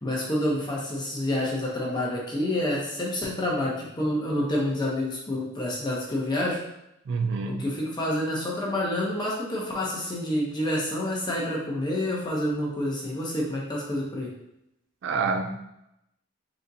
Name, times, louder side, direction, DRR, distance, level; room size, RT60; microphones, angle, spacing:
voice 1, 0.0-6.6 7.4-14.3, left 1 dB, 20° left, -4 dB, 0.8 m, -28 dB
voice 2, 7.1-7.7 15.0-15.6, right 4 dB, 60° right, 4 dB, 0.3 m, -27 dB
3.9 x 3.5 x 2.7 m, 0.83 s
head